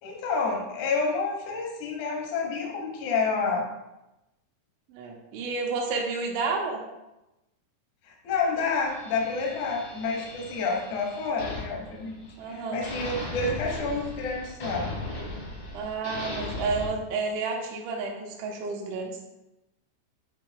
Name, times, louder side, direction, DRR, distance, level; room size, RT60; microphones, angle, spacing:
voice 1, 0.0-3.6 8.1-12.2 12.5-14.9, left 4 dB, 75° left, -1 dB, 1.7 m, -29 dB
voice 2, 4.9-6.8 12.4-12.9 15.7-19.2, right 4 dB, 90° right, 0 dB, 3.2 m, -31 dB
sound 1, 8.9-12.5 12.8-16.9, left 2 dB, 55° left, 1.6 m, -37 dB
9.5 x 4.5 x 2.2 m, 0.96 s
omnidirectional pair, 5.3 m